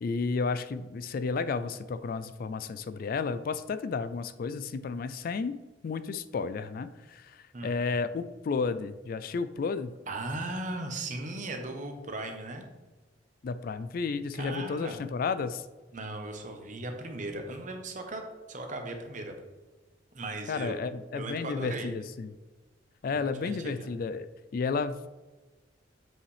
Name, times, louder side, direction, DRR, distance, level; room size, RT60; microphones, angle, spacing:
voice 1, 0.0-5.6 5.8-9.9 13.4-15.7 20.5-22.4 23.0-24.3 24.5-25.1, left 4 dB, 50° left, 12 dB, 0.3 m, -32 dB
voice 2, 10.1-12.7 14.4-15.0 15.9-19.4 20.1-20.9 21.1-21.9 23.1-23.9, right 2 dB, 45° right, 4 dB, 1.0 m, -37 dB
7.5 x 5.4 x 3.3 m, 1.2 s
head